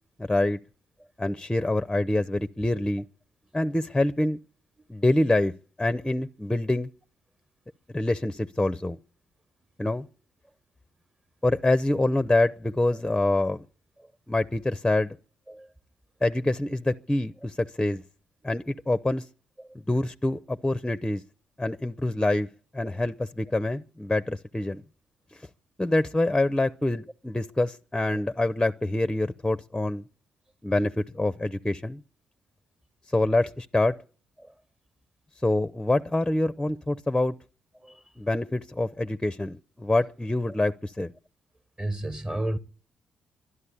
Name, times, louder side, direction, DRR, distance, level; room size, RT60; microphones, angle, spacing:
voice 1, 0.2-0.6 1.2-3.0 3.5-4.4 4.9-5.5 5.8-6.9 7.9-9.0 9.8-10.1 11.4-13.6 14.3-15.2 16.2-18.0 18.4-19.2 19.9-21.2 21.6-22.5 22.7-24.8 25.8-30.0 30.6-32.0 33.1-34.0 35.4-37.4 38.2-41.1, left 2 dB, 10° left, 0.6 m, -26 dB
voice 2, 41.8-42.6, right 1 dB, 20° right, 1.2 m, -32 dB
12.0 x 11.0 x 8.4 m
hypercardioid pair, 40°, 4 cm